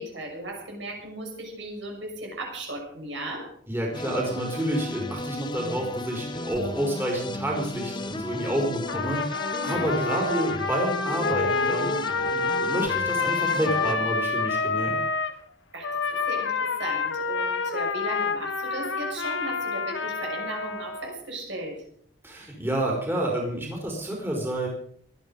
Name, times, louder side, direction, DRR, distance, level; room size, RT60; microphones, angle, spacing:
voice 1, 0.0-3.5 9.5-9.9 15.7-21.8, right 1 dB, 65° right, 1 dB, 6.5 m, -36 dB
voice 2, 3.7-9.2 9.6-14.9 22.2-24.7, right 1 dB, 10° right, -1 dB, 4.3 m, -29 dB
sound 1, 3.9-13.9, left 2 dB, 25° left, 0.8 m, -34 dB
Trumpet, 8.9-15.3 15.8-21.1, left 4 dB, 70° left, 1.5 m, -28 dB
19.0 x 13.0 x 5.4 m, 0.62 s
head